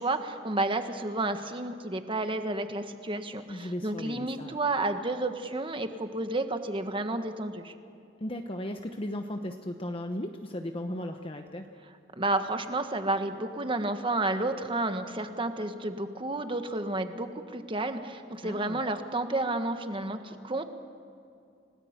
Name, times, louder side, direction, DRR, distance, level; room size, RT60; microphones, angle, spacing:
voice 1, 0.0-7.7 12.2-20.7, right 2 dB, 25° right, 8 dB, 1.4 m, -31 dB
voice 2, 3.5-4.6 8.2-11.7 18.4-18.8, left 1 dB, 30° left, 5 dB, 1.0 m, -36 dB
30.0 x 18.0 x 8.2 m, 2.5 s
head